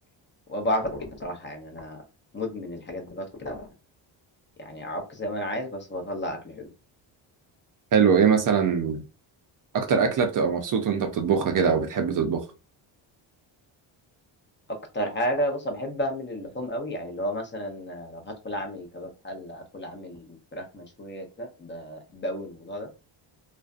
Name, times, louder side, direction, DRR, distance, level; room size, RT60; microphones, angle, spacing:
voice 1, 0.5-2.0 2.3-3.7 4.6-6.7 14.9-22.9, equal, 25° left, 0.6 m, -32 dB
voice 2, 7.9-9.0 9.7-12.4, right 6 dB, 45° right, 0.4 m, -22 dB
2.4 x 2.2 x 2.4 m
cardioid pair, 100°, 48 cm